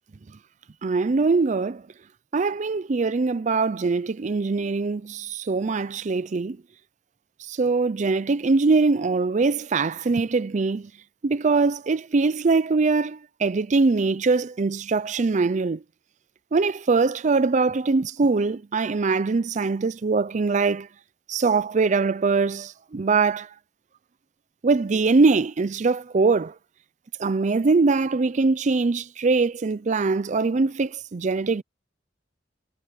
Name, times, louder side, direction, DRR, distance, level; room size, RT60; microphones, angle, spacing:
voice 1, 0.8-1.8 2.3-6.6 7.5-10.9 11.2-15.8 16.5-20.9 21.3-23.5 24.6-26.5 27.2-31.6, right 4 dB, 40° right, 0.5 m, -22 dB
head